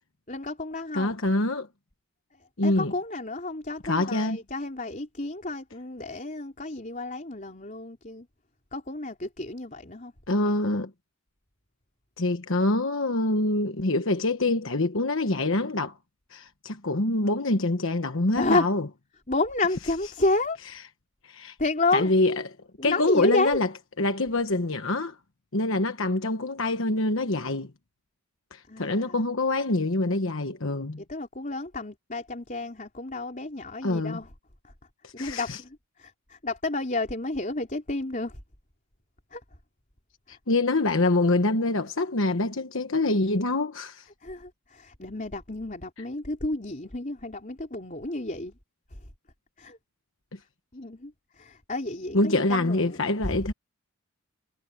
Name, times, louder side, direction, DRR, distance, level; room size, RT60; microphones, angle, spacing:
voice 1, 0.3-1.2 2.3-8.3 8.7-10.1 18.4-18.7 19.3-20.6 21.6-22.1 22.8-23.6 28.7-29.2 31.0-34.3 34.6-34.7 35.1-38.4 39.3-39.4 40.3-40.4 44.2-48.6 49.0-49.1 49.6-49.8 50.7-53.4, left 2 dB, 35° left, 3.9 m, -31 dB
voice 2, 0.9-1.7 2.6-2.9 3.8-4.4 10.3-10.9 12.2-15.9 16.3-18.8 21.2-21.5 21.9-22.4 22.8-23.7 24.0-25.2 25.5-27.7 28.5-31.0 33.8-34.2 35.0-35.6 40.3-44.1 50.3-50.4 52.1-53.5, left 2 dB, 60° left, 1.3 m, -25 dB
head